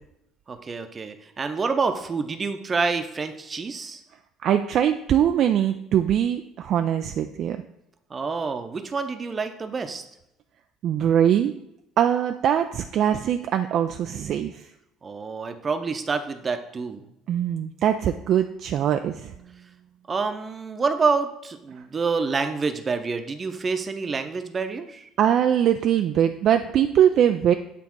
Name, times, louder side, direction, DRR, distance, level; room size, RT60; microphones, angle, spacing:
voice 1, 0.5-4.0 8.1-10.0 15.0-17.1 20.1-25.1, right 4 dB, 30° right, 7 dB, 0.8 m, -27 dB
voice 2, 4.4-7.6 10.8-11.5 12.0-14.7 17.3-19.3 25.2-27.5, right 10 dB, 50° right, 7 dB, 0.3 m, -22 dB
8.4 x 3.4 x 4.6 m, 0.83 s
figure-of-eight pair, 55°, 0 cm